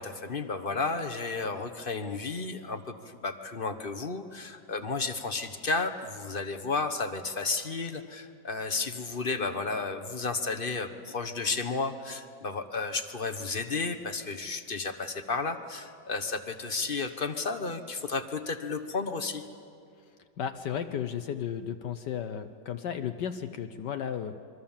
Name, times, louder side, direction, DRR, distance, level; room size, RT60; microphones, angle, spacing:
voice 1, 0.0-19.4, left 4 dB, 35° left, 8 dB, 1.0 m, -32 dB
voice 2, 20.4-24.4, left 8 dB, 65° left, 8 dB, 1.4 m, -34 dB
27.0 x 24.0 x 7.3 m, 2.4 s
omnidirectional pair, 2.1 m